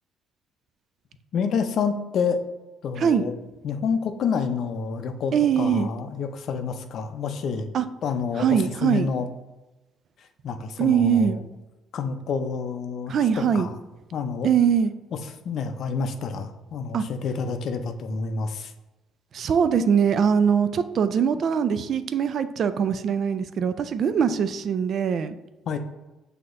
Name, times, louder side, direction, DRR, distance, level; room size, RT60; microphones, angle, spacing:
voice 1, 1.3-2.4 2.8-3.3 3.6-7.7 8.0-9.3 10.4-11.4 11.9-13.7 14.1-14.5 15.4-18.7 25.7-25.8, left 5 dB, 60° left, 7 dB, 0.5 m, -28 dB
voice 2, 3.0-3.3 5.3-5.9 7.7-7.8 8.4-9.1 10.8-11.4 13.1-13.7 14.4-14.9 16.9-17.0 19.3-25.4, right 7 dB, 55° right, 11 dB, 0.3 m, -22 dB
6.0 x 2.8 x 2.5 m, 1.1 s
supercardioid pair, 80°, 0 cm